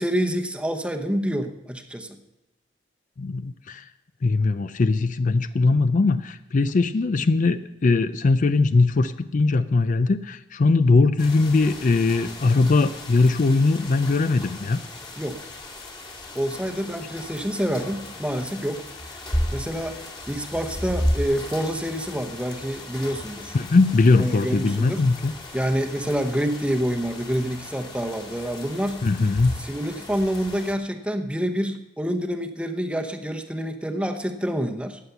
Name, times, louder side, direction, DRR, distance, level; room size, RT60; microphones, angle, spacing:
voice 1, 0.0-2.2 15.2-15.4 16.3-18.8 19.1-19.2 19.5-20.0 20.3-23.5 24.2-25.1 25.5-29.0 29.6-35.0, equal, 5° right, 5 dB, 0.9 m, -27 dB
voice 2, 3.2-3.8 4.2-14.8 23.5-25.3 29.0-29.6, left 3 dB, 45° left, 12 dB, 0.4 m, -20 dB
sound 1, 11.2-30.7, left 1 dB, 25° left, 1.9 m, -35 dB
14.5 x 9.6 x 5.8 m, 0.95 s
head